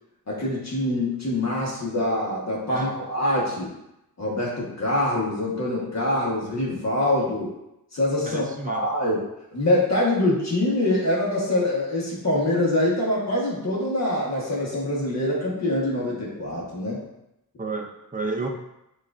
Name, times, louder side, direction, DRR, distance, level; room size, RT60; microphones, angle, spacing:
voice 1, 0.3-3.7 4.2-7.5 7.9-9.2 9.5-17.0, left 1 dB, 45° left, -5 dB, 1.1 m, -24 dB
voice 2, 8.2-8.8 17.6-18.5, right 3 dB, 20° right, 3 dB, 0.6 m, -31 dB
7.3 x 2.5 x 2.4 m, 0.87 s
wide cardioid pair, 100°, 37 cm